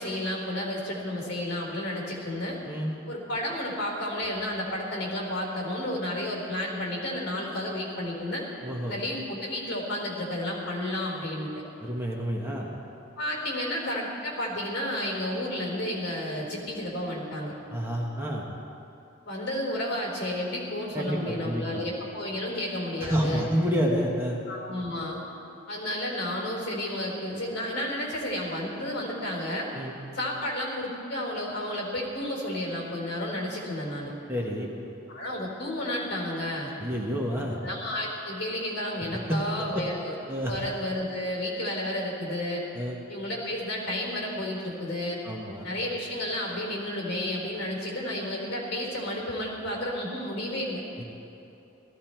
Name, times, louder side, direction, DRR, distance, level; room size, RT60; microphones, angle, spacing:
voice 1, 0.0-2.6 3.1-8.4 8.9-11.5 13.2-17.5 19.3-23.4 24.5-25.2 25.7-29.7 30.1-34.1 35.1-36.7 37.6-40.1 40.5-42.6 43.1-45.2 45.6-50.8, left 1 dB, 55° left, -2 dB, 4.0 m, -31 dB
voice 2, 8.6-9.0 11.8-12.7 17.7-18.4 20.9-21.8 23.0-24.4 29.7-29.9 34.3-34.7 36.8-37.6 39.3-39.8 40.3-40.6 42.7-43.0 45.2-45.7 51.0-51.1, equal, 10° right, -2 dB, 1.2 m, -29 dB
18.0 x 14.0 x 4.5 m, 2.9 s
head